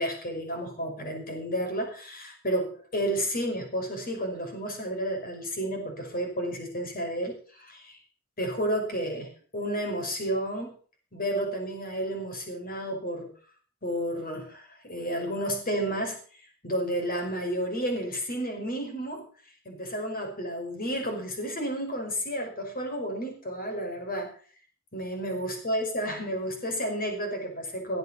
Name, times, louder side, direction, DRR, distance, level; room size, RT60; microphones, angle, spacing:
voice 1, 0.0-8.0 8.4-10.7 11.1-13.3 13.8-16.2 16.6-19.3 19.7-24.3 24.9-28.0, equal, 40° left, 3 dB, 5.6 m, -31 dB
18.0 x 8.1 x 7.2 m, 0.43 s
head